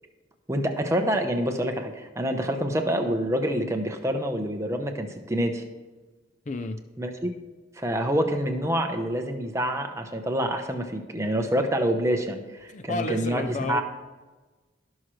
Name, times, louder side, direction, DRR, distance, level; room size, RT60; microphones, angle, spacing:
voice 1, 0.5-5.6 7.0-7.3 7.8-13.8, equal, 15° right, 4 dB, 0.9 m, -27 dB
voice 2, 6.5-6.8 12.7-13.8, left 2 dB, 40° left, 8 dB, 0.5 m, -31 dB
18.0 x 6.2 x 3.2 m, 1.3 s
head